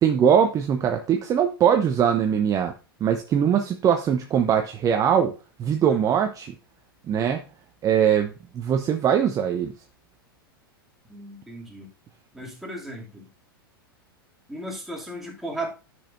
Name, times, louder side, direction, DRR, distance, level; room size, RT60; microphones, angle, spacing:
voice 1, 0.0-2.7 3.0-5.3 5.6-6.5 7.1-7.4 7.8-9.7, right 8 dB, 25° right, 5 dB, 0.7 m, -21 dB
voice 2, 11.1-11.9 12.3-13.3 14.5-15.7, right 1 dB, ahead, -3 dB, 2.5 m, -35 dB
10.0 x 6.3 x 2.6 m, 0.32 s
hypercardioid pair, 100°, 12 cm